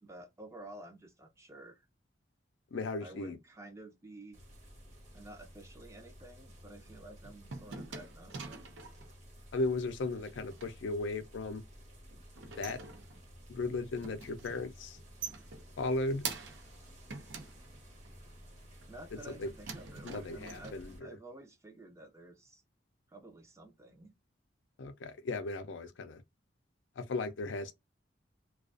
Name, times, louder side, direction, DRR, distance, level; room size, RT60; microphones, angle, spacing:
voice 1, 0.0-1.9 3.0-4.4 5.1-8.6 18.9-22.6 23.1-24.1, right 2 dB, 15° right, 0.5 m, -51 dB
voice 2, 2.7-3.4 9.5-11.6 12.6-12.8 13.5-15.0 15.8-16.3 19.4-19.5 20.0-21.2 24.8-26.2 27.0-27.7, left 2 dB, 90° left, 0.5 m, -36 dB
sound 1, 4.3-21.0, equal, 40° right, 0.9 m, -54 dB
sound 2, 6.9-9.1 10.1-10.7 12.1-13.4 13.8-14.7 15.0-16.8 17.1-18.2 18.8-19.4 19.7-20.7, right 5 dB, 85° right, 0.5 m, -45 dB
2.4 x 2.3 x 2.4 m
head